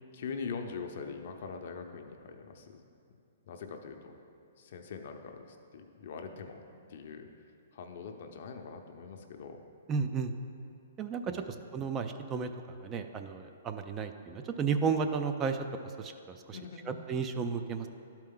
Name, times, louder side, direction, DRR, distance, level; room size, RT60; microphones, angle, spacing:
voice 1, 0.1-2.8 3.5-4.1 4.6-6.6 6.9-7.3 7.7-9.6 11.3-11.5 16.5-17.0, left 5 dB, 60° left, 5 dB, 0.7 m, -42 dB
voice 2, 9.9-10.3 11.0-11.4 11.7-15.6 16.0-16.6 16.9-17.9, right 5 dB, 20° right, 7 dB, 0.4 m, -33 dB
11.5 x 4.5 x 3.8 m, 2.4 s
hypercardioid pair, 140°, 0 cm